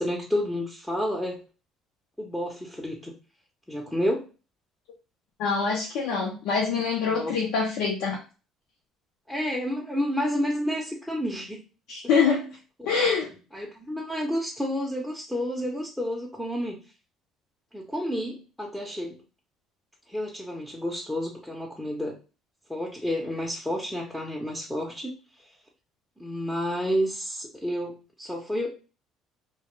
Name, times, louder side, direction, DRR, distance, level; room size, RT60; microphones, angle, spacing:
voice 1, 0.0-1.4 2.2-3.1 3.7-4.2 7.1-7.4 9.3-11.6 12.8-12.9 13.5-16.8 17.7-19.2 20.1-22.2 22.7-25.2 26.2-28.7, equal, 5° left, -2 dB, 0.6 m, -30 dB
voice 2, 5.4-8.2 11.9-12.5 12.9-13.3, left 5 dB, 75° left, -1 dB, 0.6 m, -25 dB
2.2 x 2.1 x 3.1 m, 0.33 s
supercardioid pair, 70°, 0 cm